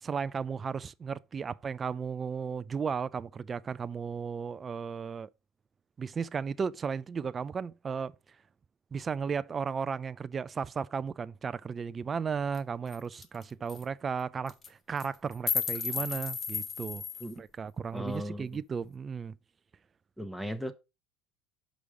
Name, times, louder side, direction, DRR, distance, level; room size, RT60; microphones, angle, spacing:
voice 1, 0.0-5.3 6.0-8.1 8.9-17.0 17.4-19.4, right 6 dB, 25° right, 0.3 m, -35 dB
sound 1, 12.5-12.6 12.9-13.0 13.2-13.4 13.7-13.8 14.5-14.7 15.0-17.3, left 6 dB, 35° left, 1.0 m, -33 dB
voice 2, 17.9-18.5 20.2-20.7, equal, ahead, 0.9 m, -36 dB
5.1 x 5.0 x 4.7 m
supercardioid pair, 105°, 0 cm